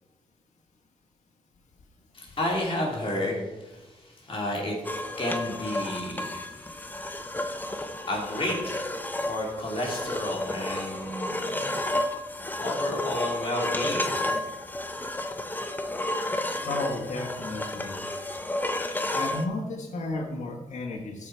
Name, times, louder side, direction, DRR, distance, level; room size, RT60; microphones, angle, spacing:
voice 1, 2.1-4.8 5.2-6.4 8.1-8.9 9.2-11.7 12.6-14.1, left 1 dB, 45° left, -2 dB, 2.8 m, -31 dB
sound 1, 4.8-19.5, left 1 dB, 15° left, 0.7 m, -31 dB
voice 2, 16.6-18.0 19.1-21.3, left 2 dB, 65° left, -1 dB, 1.5 m, -33 dB
13.5 x 4.9 x 4.5 m, 1.1 s
cardioid pair, 95°, 13 cm